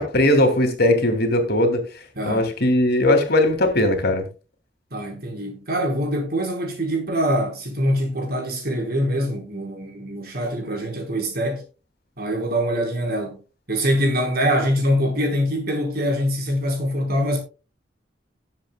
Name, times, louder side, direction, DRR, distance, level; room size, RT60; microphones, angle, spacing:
voice 1, 0.0-1.8 2.2-4.3, left 1 dB, 60° left, 2.6 m, -19 dB
voice 2, 2.2-2.5 4.9-11.6 12.2-13.4 13.7-17.4, equal, 60° right, 4.4 m, -24 dB
18.0 x 7.5 x 2.3 m
head